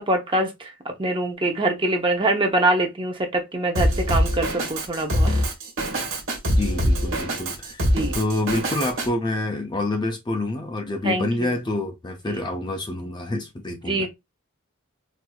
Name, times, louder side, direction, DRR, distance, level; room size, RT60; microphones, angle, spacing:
voice 1, 0.0-5.3 7.9-8.2 11.0-11.5 12.3-12.4 13.9-14.1, right 2 dB, 25° right, 0.7 m, -24 dB
Drum kit, 3.8-9.1, equal, 70° right, 1.3 m, -23 dB
voice 2, 6.4-7.9 8.1-14.1, left 2 dB, 20° left, 0.4 m, -27 dB
4.2 x 2.6 x 2.2 m
head